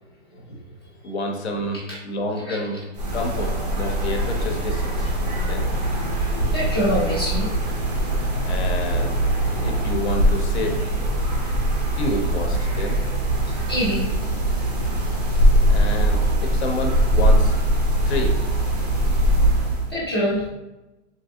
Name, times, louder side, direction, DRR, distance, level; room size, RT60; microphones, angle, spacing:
voice 1, 1.0-2.8 3.1-5.1 5.4-5.7 8.4-9.2 9.6-10.8 12.0-13.0 15.7-17.6 18.1-18.4, left 1 dB, 60° left, 2 dB, 0.7 m, -28 dB
sound 1, 2.9-19.9, right 1 dB, 35° right, 0.4 m, -21 dB
voice 2, 6.5-7.5 13.7-14.1 19.9-20.5, equal, 20° left, -8 dB, 0.5 m, -24 dB
3.1 x 2.6 x 2.5 m, 1.0 s
hypercardioid pair, 175°, 38 cm